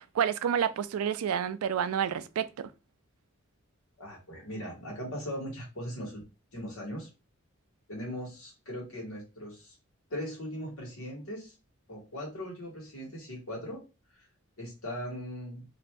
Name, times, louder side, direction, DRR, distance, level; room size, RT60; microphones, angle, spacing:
voice 1, 0.0-2.7, right 8 dB, 85° right, 0.3 m, -29 dB
voice 2, 4.0-6.2 6.5-7.1 7.9-9.8 10.1-11.6 11.9-13.8 14.1-14.3 14.6-15.6, equal, 85° left, 1.5 m, -39 dB
2.6 x 2.6 x 3.2 m
head